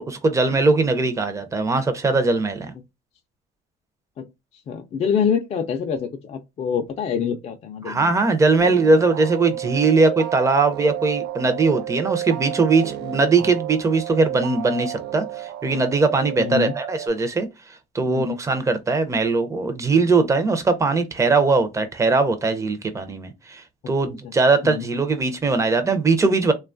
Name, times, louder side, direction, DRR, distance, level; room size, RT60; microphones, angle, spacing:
voice 1, 0.0-2.7 7.8-26.5, right 3 dB, 20° right, 0.5 m, -20 dB
voice 2, 4.7-8.1 16.4-16.7 18.1-18.4 24.2-24.3 24.6-24.8, left 7 dB, 40° left, 0.4 m, -25 dB
sound 1, 8.6-17.1, right 14 dB, 80° right, 0.4 m, -32 dB
2.9 x 2.2 x 2.5 m
cardioid pair, 110°, 17 cm